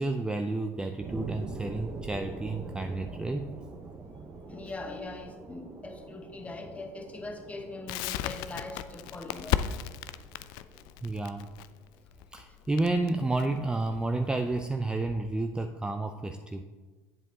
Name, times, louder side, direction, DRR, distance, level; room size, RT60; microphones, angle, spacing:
voice 1, 0.0-3.5 11.0-11.5 12.3-16.6, right 2 dB, 10° right, 6 dB, 0.4 m, -31 dB
sound 1, 1.0-12.0 12.5-12.6, right 3 dB, 35° right, 0.9 m, -44 dB
voice 2, 4.5-9.6, left 2 dB, 15° left, 5 dB, 1.0 m, -41 dB
Crackle, 7.9-14.7, left 11 dB, 65° left, 0.3 m, -35 dB
7.9 x 7.2 x 2.8 m, 1.3 s
hypercardioid pair, 80°, 8 cm